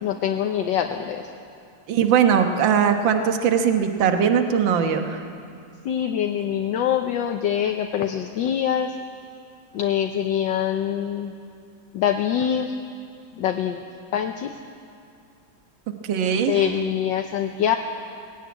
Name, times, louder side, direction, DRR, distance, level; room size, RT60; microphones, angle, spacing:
voice 1, 0.0-1.2 5.8-8.9 9.7-11.3 11.9-12.7 13.4-13.8 14.1-14.5 16.5-17.8, left 9 dB, 70° left, 5 dB, 1.4 m, -24 dB
voice 2, 1.9-5.2 16.0-16.7, right 7 dB, 70° right, 6 dB, 1.9 m, -20 dB
19.5 x 16.5 x 9.5 m, 2.5 s
omnidirectional pair, 2.2 m